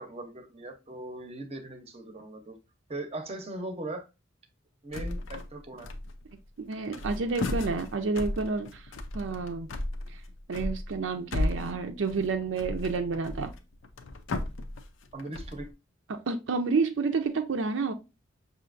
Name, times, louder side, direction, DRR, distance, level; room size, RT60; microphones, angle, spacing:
voice 1, 0.0-2.6 2.9-4.1 4.8-5.9 15.1-15.7, right 1 dB, 30° right, 0.7 m, -39 dB
sound 1, 4.9-5.5 5.8-6.4 6.7-15.7, left 2 dB, 70° left, 0.5 m, -35 dB
voice 2, 6.6-8.9 9.1-9.7 10.1-10.2 10.5-13.5 16.1-17.9, right 4 dB, 70° right, 0.5 m, -29 dB
5.6 x 2.8 x 2.5 m
head